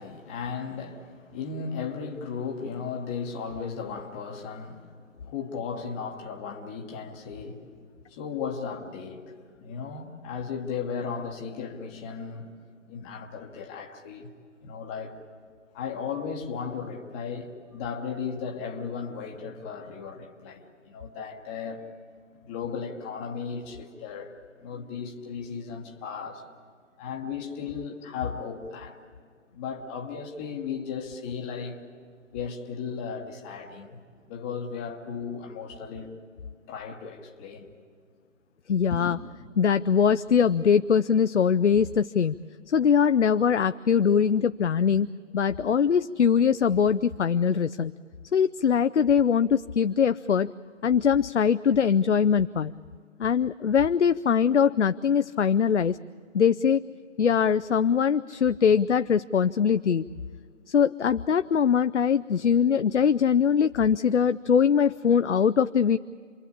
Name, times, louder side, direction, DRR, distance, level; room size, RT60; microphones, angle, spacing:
voice 1, 0.0-7.7 8.0-12.5 12.9-14.3 14.6-15.2 15.7-21.8 22.4-24.3 24.6-26.4 27.0-29.0 29.5-31.8 32.3-34.0 34.3-36.1 36.7-37.7 38.9-39.2, left 6 dB, 10° left, 1.0 m, -36 dB
voice 2, 38.7-39.2 39.6-42.4 42.7-47.9 48.3-50.5 50.8-52.7 53.2-56.0 56.3-56.8 57.2-60.0 60.7-66.0, left 7 dB, 65° left, 0.6 m, -22 dB
27.5 x 22.5 x 8.5 m
figure-of-eight pair, 145°, 38 cm